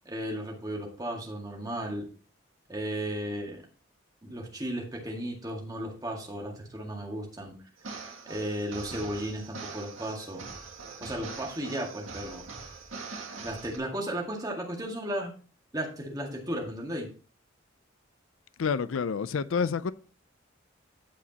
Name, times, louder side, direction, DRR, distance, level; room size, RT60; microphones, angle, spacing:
voice 1, 0.1-2.1 2.7-3.6 4.2-7.6 8.3-10.4 11.0-12.4 13.4-15.3 15.7-17.1, right 1 dB, 20° right, 1.9 m, -35 dB
sound 1, 7.8-13.8, right 4 dB, 80° right, 2.0 m, -42 dB
voice 2, 18.6-19.9, left 5 dB, 80° left, 0.4 m, -28 dB
15.0 x 5.0 x 2.9 m
head